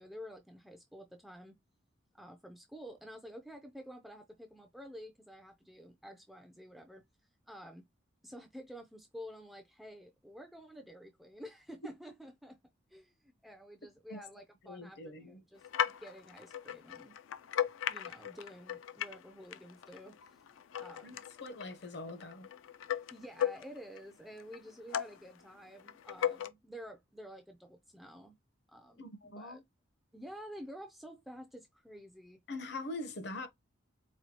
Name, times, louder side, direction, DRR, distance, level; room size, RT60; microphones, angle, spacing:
voice 1, 0.0-1.6 2.1-7.0 7.5-7.9 8.2-12.6 12.9-15.7 16.0-17.2 17.9-20.2 20.8-21.2 23.1-28.4 28.7-29.6 30.1-32.4, equal, ahead, 0.3 m, -50 dB
voice 2, 14.6-15.4 21.0-22.5 29.0-29.6 32.5-33.5, left 2 dB, 55° left, 0.7 m, -43 dB
sound 1, 15.6-19.3 19.5-24.0 24.4-25.3 25.8-26.5, left 9 dB, 80° left, 0.3 m, -37 dB
4.3 x 2.3 x 2.8 m
head